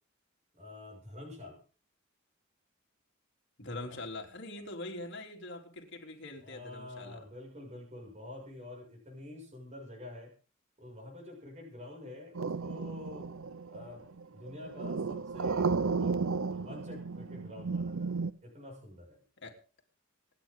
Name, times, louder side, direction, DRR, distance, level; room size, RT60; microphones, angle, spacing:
voice 1, 0.5-1.6 3.8-4.0 6.4-10.3 10.8-13.3 13.7-19.2, left 2 dB, 35° right, -1 dB, 6.5 m, -47 dB
voice 2, 3.6-7.2 19.4-19.6, left 2 dB, 60° left, 1 dB, 3.6 m, -43 dB
sound 1, 12.3-18.3, right 4 dB, 70° right, 0.7 m, -33 dB
26.0 x 10.0 x 3.9 m, 0.37 s
head